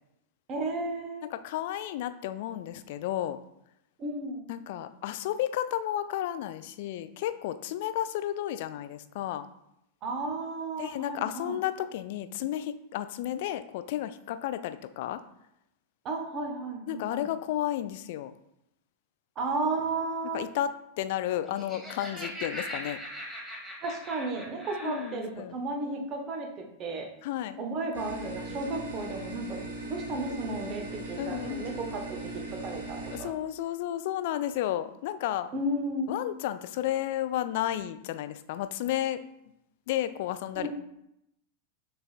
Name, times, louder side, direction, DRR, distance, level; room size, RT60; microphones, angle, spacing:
voice 1, 0.5-1.3 4.0-4.5 10.0-11.6 16.0-17.3 19.4-20.4 23.8-27.1 27.6-29.6 29.9-33.3 35.5-36.2 40.6-40.7, right 2 dB, 35° right, 2 dB, 0.9 m, -33 dB
voice 2, 1.3-3.4 4.5-9.5 10.8-15.2 16.9-18.3 20.3-20.7 21.0-23.0 24.8-25.5 27.2-27.6 31.2-31.9 33.1-35.5 36.1-39.2 39.9-40.7, left 12 dB, 50° left, 11 dB, 0.3 m, -32 dB
Laughter, 21.4-25.2, equal, 5° right, 1.4 m, -40 dB
sound 1, 27.9-33.2, right 2 dB, 65° right, 1.0 m, -39 dB
6.3 x 3.4 x 2.4 m, 0.81 s
figure-of-eight pair, 90°, 0 cm